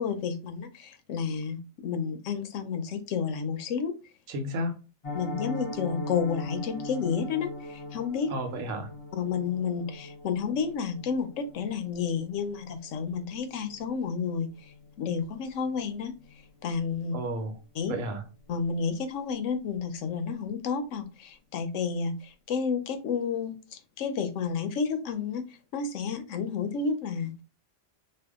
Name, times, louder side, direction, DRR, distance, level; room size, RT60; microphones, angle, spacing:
voice 1, 0.0-3.9 5.1-8.3 9.1-14.7 15.0-16.1 16.6-17.1 17.7-17.9 18.5-25.4 25.7-27.3, left 6 dB, 80° left, 0.9 m, -31 dB
voice 2, 4.3-4.7 8.3-8.9 17.1-17.5 17.9-18.2, right 1 dB, 90° right, 1.1 m, -32 dB
Piano, 5.0-15.9 16.2-16.4 16.7-16.9 17.2-17.5 17.8-17.9, left 2 dB, 35° left, 0.7 m, -41 dB
2.7 x 2.3 x 3.4 m
omnidirectional pair, 1.3 m